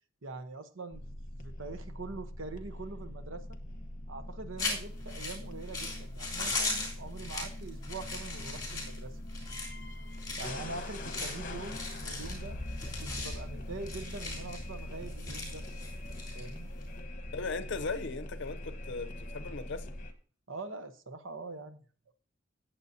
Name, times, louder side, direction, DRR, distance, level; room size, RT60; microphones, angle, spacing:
voice 1, 0.2-1.0 1.4-3.6 4.1-9.2 10.4-12.6 13.0-15.7 16.3-16.7 20.5-21.8 22.1-22.2, right 3 dB, 70° right, 1.0 m, -43 dB
sound 1, 0.9-20.1, left 1 dB, 40° left, 1.2 m, -42 dB
sound 2, 4.6-16.9, left 3 dB, 20° left, 3.3 m, -39 dB
voice 2, 17.3-19.9, left 4 dB, 60° left, 0.7 m, -38 dB
17.5 x 7.3 x 2.8 m
head